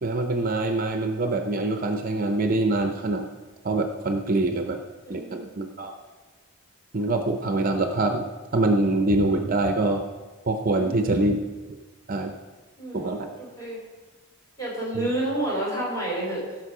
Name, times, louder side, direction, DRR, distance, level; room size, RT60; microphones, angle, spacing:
voice 1, 0.0-3.3 3.6-4.8 5.1-6.0 6.9-8.3 8.5-10.0 10.5-11.3 12.1-12.3 12.9-13.3 14.9-15.1, right 2 dB, 40° right, 5 dB, 0.6 m, -24 dB
voice 2, 5.0-5.6 10.7-11.3 12.8-13.8 14.6-16.6, right 1 dB, 15° left, -5 dB, 4.2 m, -30 dB
16.5 x 6.1 x 4.9 m, 1.3 s
head